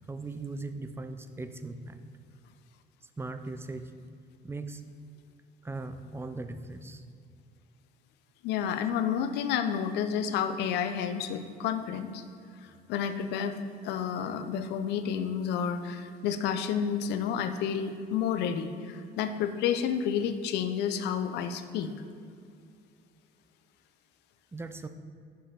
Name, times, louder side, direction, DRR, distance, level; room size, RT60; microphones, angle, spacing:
voice 1, 0.1-2.0 3.2-3.9 4.4-4.8 5.6-7.0 8.8-8.9 24.5-24.9, right 3 dB, 15° right, 9 dB, 0.4 m, -39 dB
voice 2, 8.4-12.2 12.9-13.6 13.8-21.9, left 8 dB, 85° left, 9 dB, 0.6 m, -30 dB
6.8 x 5.1 x 5.8 m, 2.4 s
cardioid pair, 110°, 17 cm